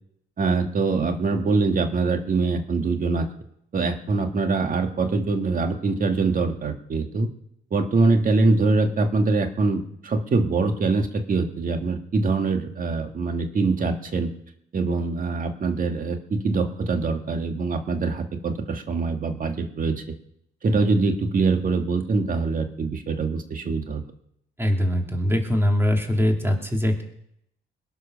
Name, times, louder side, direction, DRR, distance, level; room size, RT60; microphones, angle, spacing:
voice 1, 0.4-3.3 3.7-7.3 7.7-14.3 14.7-20.0 20.6-24.0, right 3 dB, 45° right, 6 dB, 1.9 m, -23 dB
voice 2, 24.6-27.0, equal, 10° right, 2 dB, 3.1 m, -22 dB
21.5 x 7.8 x 6.4 m, 0.74 s
cardioid pair, 90°, 20 cm